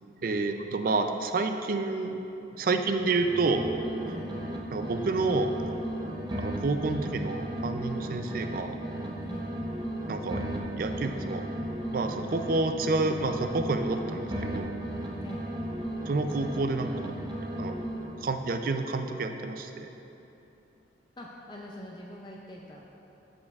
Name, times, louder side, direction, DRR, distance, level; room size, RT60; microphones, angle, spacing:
voice 1, 0.0-2.2 2.6-3.7 4.7-5.6 6.4-8.8 10.1-10.4 10.8-11.5 11.9-14.7 16.1-17.1 17.6-17.8 18.2-19.9, right 3 dB, 50° right, 6 dB, 0.4 m, -29 dB
sound 1, 2.9-4.6 4.8-8.6 8.8-12.6 12.8-16.6 16.8-18.2, right 1 dB, 25° right, 0.7 m, -35 dB
voice 2, 9.2-9.5 15.2-15.5 21.2-22.9, equal, 25° left, -2 dB, 0.4 m, -44 dB
13.0 x 5.2 x 2.4 m, 2.9 s
head